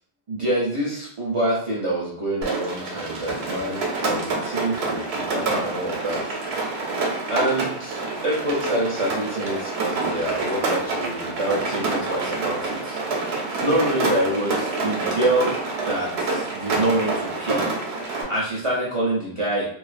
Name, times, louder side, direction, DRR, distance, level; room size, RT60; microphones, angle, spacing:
voice 1, 0.3-6.4 7.3-8.0 8.2-13.0 13.6-15.5 15.9-19.7, right 1 dB, 45° right, -6 dB, 0.4 m, -26 dB
Rain, 2.4-18.2, right 3 dB, 90° right, 0.9 m, -27 dB
2.3 x 2.2 x 2.4 m, 0.62 s
omnidirectional pair, 1.1 m